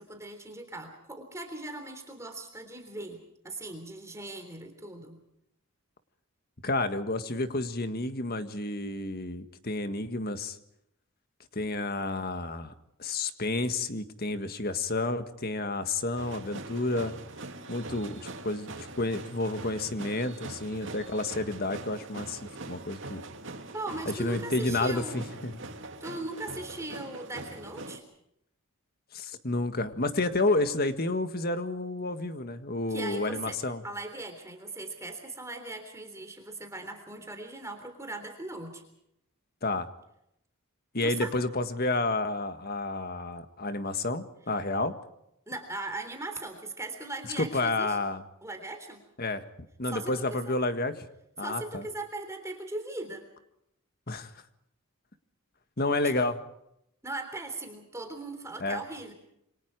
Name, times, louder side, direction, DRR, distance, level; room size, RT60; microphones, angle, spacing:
voice 1, 0.0-5.2 23.7-25.3 26.0-28.0 32.9-33.6 33.8-38.8 41.0-41.3 45.5-48.0 48.4-49.0 49.8-50.5 51.4-53.3 56.0-56.1 57.0-59.1, right 2 dB, 15° right, 5 dB, 3.5 m, -39 dB
voice 2, 6.6-10.6 11.5-12.7 13.0-17.1 17.7-22.4 22.7-23.2 24.1-25.6 29.1-33.8 39.6-39.9 40.9-44.9 47.4-48.2 49.2-49.4 49.8-51.0 51.4-51.8 54.1-54.3 55.8-56.4 58.6-58.8, left 2 dB, 45° left, 9 dB, 1.8 m, -30 dB
sound 1, 16.2-28.0, right 2 dB, 60° right, 2.6 m, -43 dB
27.5 x 25.0 x 4.8 m, 0.78 s
head